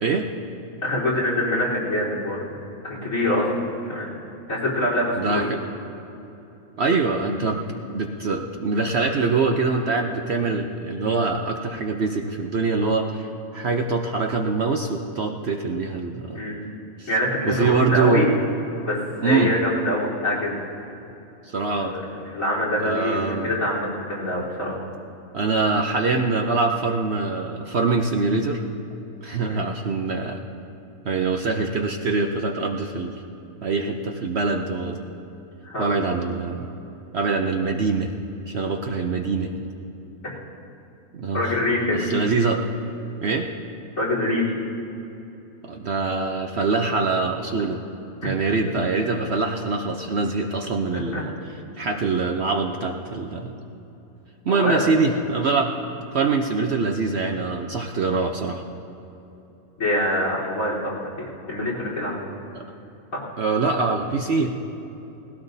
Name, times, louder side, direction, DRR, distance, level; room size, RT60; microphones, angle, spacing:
voice 1, 0.8-2.5 2.8-4.1 4.5-5.5 16.3-16.6 17.1-18.3 18.8-20.6 21.7-22.0 22.3-24.8 29.5-29.7 35.6-35.9 41.3-42.0 44.0-44.5 51.1-51.2 54.5-54.9 59.8-62.3 63.1-63.2, left 1 dB, 60° left, -6 dB, 4.3 m, -25 dB
voice 2, 5.1-5.6 6.8-16.4 17.0-17.1 17.4-18.3 19.2-19.5 21.4-21.9 22.8-23.5 25.3-28.6 29.2-30.4 31.0-33.2 33.6-35.0 35.8-36.7 37.1-38.1 38.5-39.5 41.1-41.6 41.9-42.6 43.2-43.5 45.6-47.8 48.2-51.3 51.8-53.5 54.4-55.8 56.1-58.6 62.5-62.6 63.4-64.5, right 4 dB, 55° right, 3 dB, 0.9 m, -24 dB
19.0 x 16.0 x 2.7 m, 2.9 s
omnidirectional pair, 1.6 m